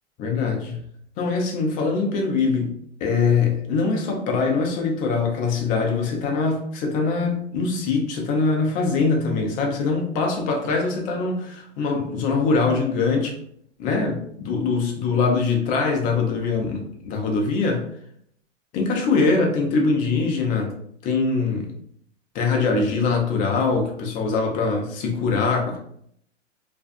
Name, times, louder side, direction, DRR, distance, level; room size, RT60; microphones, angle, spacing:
voice 1, 0.2-0.8 1.2-2.7 3.0-13.3 13.8-17.8 18.7-20.7 21.0-21.7 22.3-25.8, left 4 dB, 25° left, 1 dB, 0.4 m, -23 dB
2.5 x 2.2 x 2.6 m, 0.68 s
hypercardioid pair, 125°, 36 cm